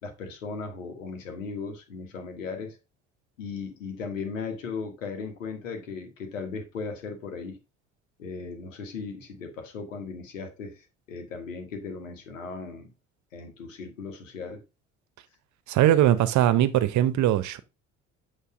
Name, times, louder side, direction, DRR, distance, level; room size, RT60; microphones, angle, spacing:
voice 1, 0.0-2.8 3.4-7.6 8.2-12.9 13.3-14.6, left 4 dB, 80° left, 1.6 m, -37 dB
voice 2, 15.7-17.6, right 12 dB, 50° right, 0.9 m, -21 dB
8.3 x 3.2 x 5.0 m
figure-of-eight pair, 55°, 38 cm